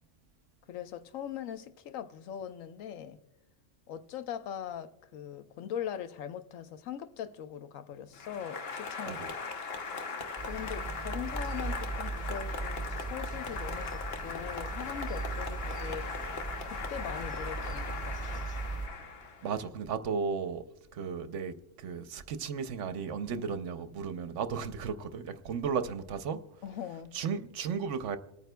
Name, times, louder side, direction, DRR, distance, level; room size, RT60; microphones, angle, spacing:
voice 1, 0.7-3.2 3.9-9.2 10.5-16.3 16.6-18.5 26.6-27.2, left 9 dB, 90° left, 1.1 m, -41 dB
Applause, 8.1-19.6, left 4 dB, 55° left, 1.0 m, -39 dB
sound 1, 10.4-18.9, right 3 dB, 5° left, 1.5 m, -38 dB
voice 2, 19.4-20.6 20.9-26.4 27.1-28.2, right 6 dB, 75° right, 0.9 m, -34 dB
27.5 x 9.1 x 2.2 m
omnidirectional pair, 1.3 m